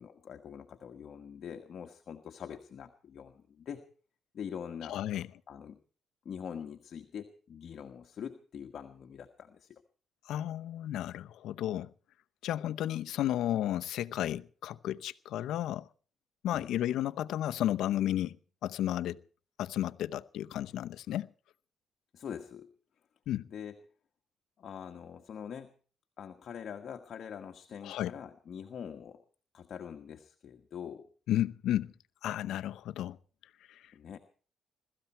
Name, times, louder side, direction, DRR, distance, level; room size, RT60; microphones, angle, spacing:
voice 1, 0.0-3.8 4.3-5.8 6.2-9.8 16.5-16.7 22.1-22.7 23.5-23.8 24.6-25.7 26.2-29.2 29.5-31.1 33.9-34.2, left 8 dB, 60° left, 1.5 m, -44 dB
voice 2, 4.9-5.3 10.3-11.9 12.4-15.9 16.4-18.4 18.6-19.2 19.6-21.3 23.3-23.4 27.8-28.1 31.3-31.9 32.2-33.2 33.7-33.8, left 12 dB, 80° left, 0.8 m, -33 dB
22.0 x 14.0 x 4.4 m
cardioid pair, 90°, 0 cm